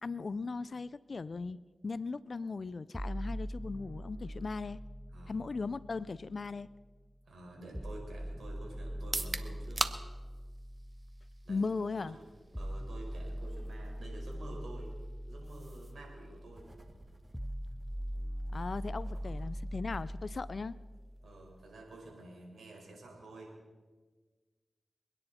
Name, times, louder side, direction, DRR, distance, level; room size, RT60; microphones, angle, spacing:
voice 1, 0.0-4.8 5.3-6.7 11.5-12.2 18.5-20.8, left 4 dB, 60° left, 18 dB, 0.4 m, -38 dB
sound 1, 2.9-6.9 7.7-21.8, equal, ahead, 0.4 m, -42 dB
voice 2, 7.3-9.8 11.4-11.6 11.9-12.1 12.6-14.9 15.3-16.7 19.2-19.3 21.2-23.5, right 2 dB, 80° right, -1 dB, 5.0 m, -50 dB
sound 2, 9.0-22.8, right 3 dB, 45° right, 1.0 m, -46 dB
sound 3, 12.2-20.2, right 2 dB, 30° right, 1.8 m, -60 dB
26.0 x 10.0 x 4.2 m, 1.4 s
cardioid pair, 40°, 0 cm